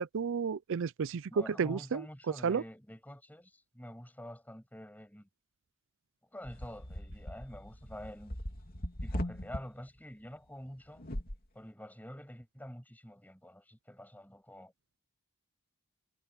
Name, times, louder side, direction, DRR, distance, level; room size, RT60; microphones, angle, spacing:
voice 1, 0.0-2.1 2.4-2.6, right 6 dB, 60° right, 0.4 m, -32 dB
voice 2, 1.3-5.3 6.3-8.4 9.0-11.0 11.5-14.7, equal, 10° left, 6.5 m, -47 dB
sound 1, 6.5-9.6 11.0-11.4, equal, 45° left, 2.9 m, -39 dB
head